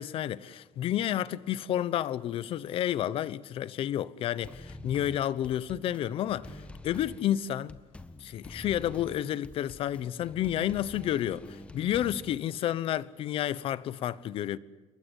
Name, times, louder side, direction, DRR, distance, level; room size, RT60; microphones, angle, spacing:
voice 1, 0.0-7.8 8.2-14.6, left 11 dB, 55° left, 0.9 m, -30 dB
sound 1, 4.4-12.4, left 2 dB, 10° left, 1.4 m, -47 dB
28.5 x 22.5 x 8.4 m
cardioid pair, 150°, 12 cm